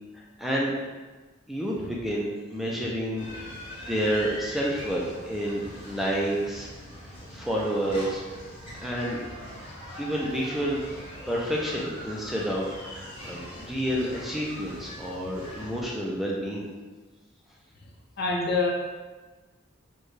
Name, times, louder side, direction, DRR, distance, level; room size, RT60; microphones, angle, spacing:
voice 1, 0.4-0.7 1.5-3.5 3.8-6.7 7.3-8.2 8.8-9.2 10.0-10.8 11.3-16.7, equal, ahead, -4 dB, 0.4 m, -29 dB
sound 1, 3.2-15.8, equal, 30° left, 1.4 m, -42 dB
voice 2, 18.2-18.7, left 3 dB, 55° left, -1 dB, 0.6 m, -25 dB
4.4 x 2.3 x 3.2 m, 1.3 s
head